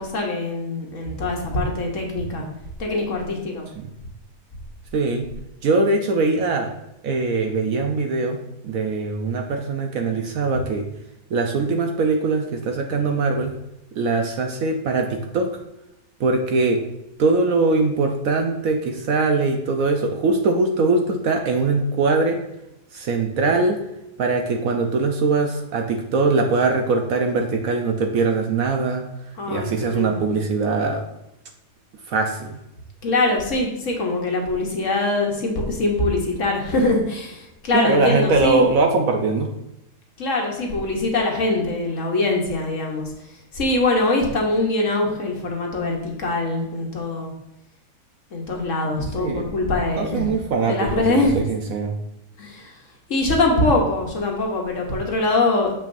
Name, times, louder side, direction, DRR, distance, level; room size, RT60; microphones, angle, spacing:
voice 1, 0.0-2.5 2.8-3.7 29.4-30.2 33.0-38.6 40.2-47.3 48.3-50.3 50.6-51.4 52.4-52.8 53.1-55.7, left 2 dB, 55° left, 1 dB, 1.3 m, -23 dB
voice 2, 4.9-5.3 5.6-6.7 7.0-10.9 11.3-13.5 14.0-15.5 16.2-16.8 17.2-22.4 22.9-23.8 24.2-29.1 29.5-31.0 32.1-32.6 37.7-39.5 49.2-49.5 50.0-50.9 51.3-51.9 53.5-53.6, right 3 dB, 65° right, 3 dB, 1.0 m, -21 dB
6.9 x 5.7 x 2.6 m, 0.87 s
omnidirectional pair, 1.8 m